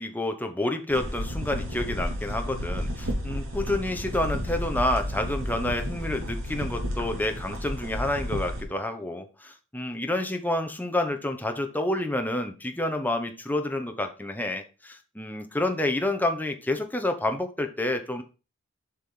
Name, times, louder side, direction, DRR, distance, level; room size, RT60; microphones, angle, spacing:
voice 1, 0.0-18.2, left 1 dB, 10° left, 5 dB, 1.2 m, -29 dB
sound 1, 0.9-8.6, equal, 65° right, 2.9 m, -32 dB
8.1 x 5.3 x 3.9 m, 0.32 s
head